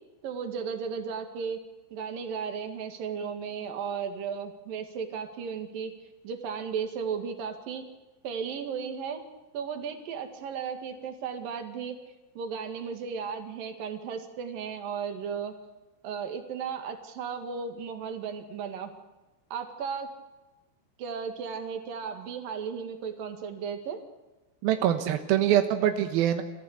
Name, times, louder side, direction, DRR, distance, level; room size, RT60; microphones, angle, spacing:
voice 1, 0.2-1.6 1.9-5.9 6.2-7.8 8.2-9.2 9.5-11.9 12.3-15.5 16.0-18.9 19.5-20.1 21.0-24.0, right 6 dB, 55° right, 6 dB, 3.1 m, -35 dB
voice 2, 24.6-26.4, right 11 dB, 80° right, 7 dB, 2.1 m, -24 dB
29.5 x 15.0 x 8.3 m, 1.1 s
omnidirectional pair, 5.9 m